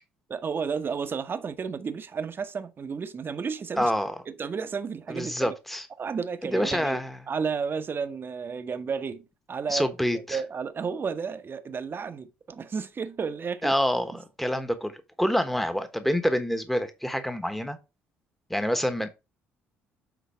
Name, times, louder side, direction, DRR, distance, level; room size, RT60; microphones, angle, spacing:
voice 1, 0.3-3.9 4.3-5.6 6.0-7.0 7.3-13.7, right 5 dB, 40° right, 1.0 m, -32 dB
voice 2, 3.8-4.1 5.1-5.9 6.5-7.2 9.7-10.4 13.6-17.8 18.5-19.1, equal, 5° left, 1.2 m, -27 dB
8.3 x 4.0 x 4.3 m
hypercardioid pair, 55°, 6 cm